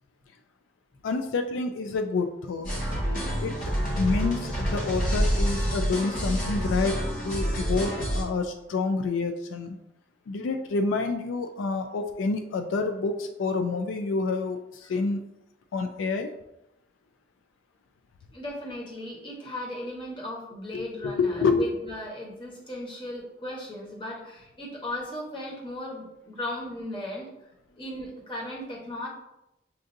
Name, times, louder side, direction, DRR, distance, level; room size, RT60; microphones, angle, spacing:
voice 1, 1.0-2.7 3.4-3.5 3.9-9.8 10.3-15.2 15.7-16.3 20.7-21.6, left 4 dB, 85° left, 6 dB, 0.4 m, -28 dB
sound 1, 2.6-8.2, equal, 45° left, 1.3 m, -27 dB
voice 2, 18.3-27.3 27.8-29.1, left 1 dB, 25° left, -3 dB, 1.1 m, -36 dB
6.7 x 2.5 x 2.6 m, 0.87 s
head